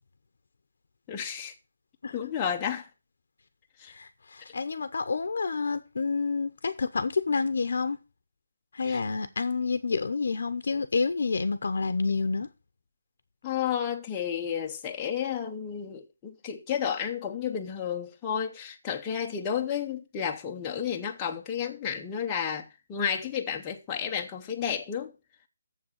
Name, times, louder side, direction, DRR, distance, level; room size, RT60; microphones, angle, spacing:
voice 1, 1.1-1.5 2.1-2.9 3.8-3.9 8.8-9.0 13.4-25.1, left 8 dB, 10° left, 0.7 m, -32 dB
voice 2, 3.9-8.0 8.7-12.5, left 4 dB, 55° left, 0.8 m, -29 dB
7.2 x 6.4 x 7.1 m
hypercardioid pair, 175°, 0 cm